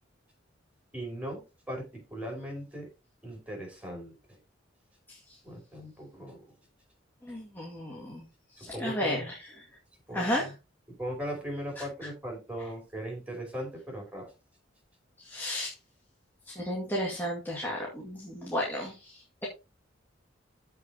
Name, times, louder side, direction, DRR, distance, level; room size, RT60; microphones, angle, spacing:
voice 1, 0.9-2.9 3.2-4.4 5.4-6.5 8.6-9.3 10.1-10.5 10.9-14.3, equal, 10° right, 0 dB, 5.2 m, -39 dB
voice 2, 7.2-8.2 8.6-9.3 10.1-10.5 11.8-11.9 15.2-15.7 16.5-19.5, left 1 dB, 10° left, -3 dB, 2.2 m, -33 dB
15.0 x 5.2 x 2.9 m, 0.28 s
head